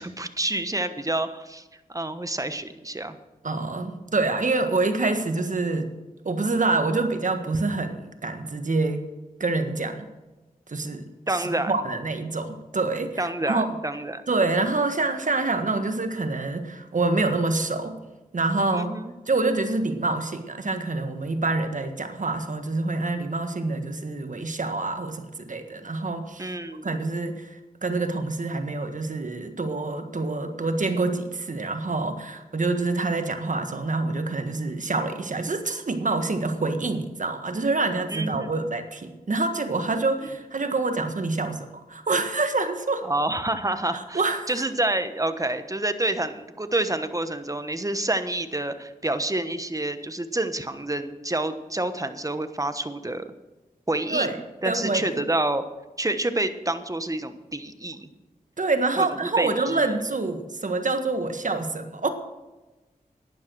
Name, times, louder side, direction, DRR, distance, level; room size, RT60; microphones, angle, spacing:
voice 1, 0.0-3.2 11.3-11.7 13.2-14.2 18.7-19.1 26.4-27.0 38.1-38.7 43.0-44.2 44.5-53.3 53.9-55.6 56.0-58.1 59.0-59.9, right 2 dB, 20° right, 10 dB, 1.2 m, -28 dB
voice 2, 3.4-5.9 6.2-9.1 9.4-10.1 10.7-11.1 11.3-13.7 14.3-18.0 18.3-18.9 19.3-26.5 26.8-43.1 43.9-44.5 54.1-54.4 54.6-55.2 58.6-62.1, right 3 dB, 55° right, 7 dB, 1.6 m, -26 dB
11.5 x 10.5 x 6.3 m, 1.1 s
cardioid pair, 50°, 15 cm